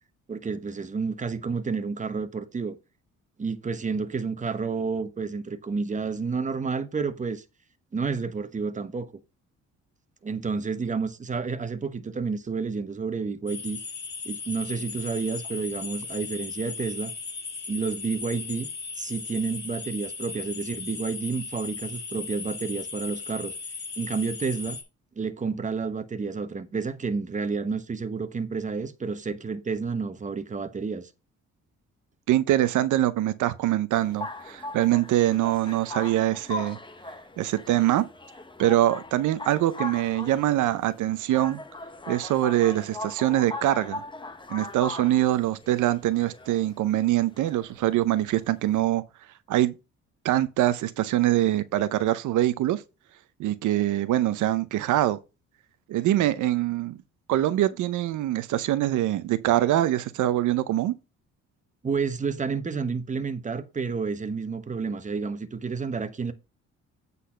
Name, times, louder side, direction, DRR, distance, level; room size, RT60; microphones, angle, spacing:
voice 1, 0.3-2.8 3.4-7.4 7.9-9.1 10.2-13.8 14.2-17.1 17.7-18.7 19.0-23.5 24.0-24.8 25.2-31.1 61.8-66.3, right 5 dB, 25° right, 1.0 m, -30 dB
sound 1, 13.5-24.8, left 5 dB, 40° left, 3.8 m, -37 dB
voice 2, 32.3-36.8 37.4-38.1 38.6-41.6 42.1-44.0 44.5-49.0 49.5-49.7 50.2-52.8 53.4-55.2 55.9-57.0 57.3-60.9, right 13 dB, 80° right, 0.7 m, -24 dB
sound 2, 33.9-48.8, left 2 dB, 15° left, 1.1 m, -39 dB
8.3 x 4.1 x 5.6 m
cardioid pair, 90°, 30 cm